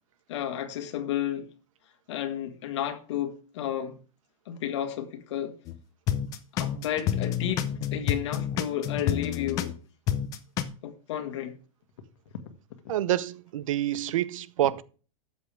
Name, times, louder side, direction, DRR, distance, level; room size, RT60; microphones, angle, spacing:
voice 1, 0.3-1.5 2.1-4.0 4.5-5.5 6.5-9.7 10.8-11.6, left 10 dB, 55° left, 1.7 m, -32 dB
sound 1, 5.7-5.8 6.1-9.8 10.1-10.6, left 10 dB, 20° left, 0.6 m, -29 dB
voice 2, 12.9-14.8, right 13 dB, 70° right, 0.8 m, -27 dB
12.5 x 8.3 x 3.4 m
supercardioid pair, 180°, 18 cm